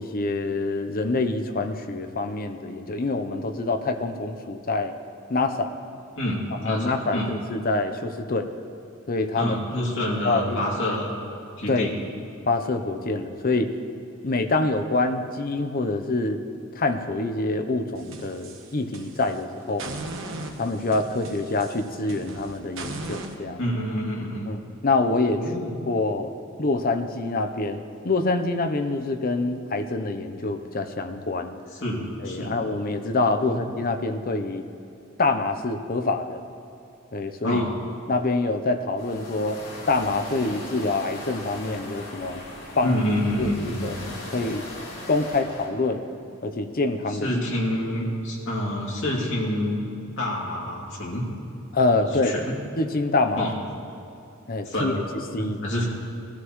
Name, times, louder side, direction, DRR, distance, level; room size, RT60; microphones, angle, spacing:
voice 1, 0.0-4.9 5.3-5.7 6.6-8.5 9.1-9.5 10.2-10.6 11.7-11.9 12.5-13.7 14.2-16.4 16.8-19.8 20.6-23.6 24.5-25.5 25.9-26.3 26.6-31.6 32.2-34.6 35.2-36.4 37.1-37.6 38.1-39.6 39.9-42.4 42.8-43.0 43.4-44.0 44.3-44.7 45.1-46.0 46.4-47.4 51.7-52.3 52.8-53.5 54.5-54.9 55.3-55.6, left 3 dB, 45° left, 7 dB, 0.7 m, -26 dB
voice 2, 6.2-7.3 9.4-11.1 11.6-12.0 23.6-24.5 25.3-25.8 31.8-32.5 33.4-33.6 37.4-37.7 42.8-43.9 47.2-49.8 50.2-51.3 52.2-52.6 53.4-53.5 54.6-55.0 55.4-55.9, left 1 dB, 65° left, -4 dB, 2.8 m, -27 dB
sound 1, 17.9-19.4 19.8-23.3, right 2 dB, 65° right, 1.2 m, -37 dB
sound 2, 39.0-45.7, left 1 dB, 80° left, 3.7 m, -39 dB
19.0 x 13.0 x 3.2 m, 2.7 s
head